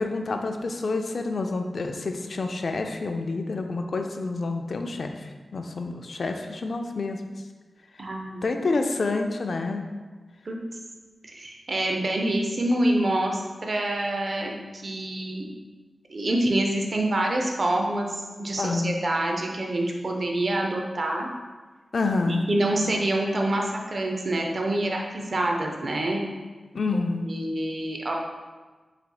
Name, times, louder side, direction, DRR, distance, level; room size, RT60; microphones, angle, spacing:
voice 1, 0.0-7.2 8.4-9.8 18.6-18.9 21.9-22.5 26.7-27.3, left 3 dB, 70° left, 5 dB, 0.3 m, -28 dB
voice 2, 8.0-8.4 10.4-10.6 11.2-15.5 16.1-21.3 22.3-26.2 27.2-28.2, right 1 dB, 60° right, 1 dB, 0.6 m, -26 dB
4.1 x 4.1 x 2.3 m, 1.3 s
cardioid pair, 60°, 0 cm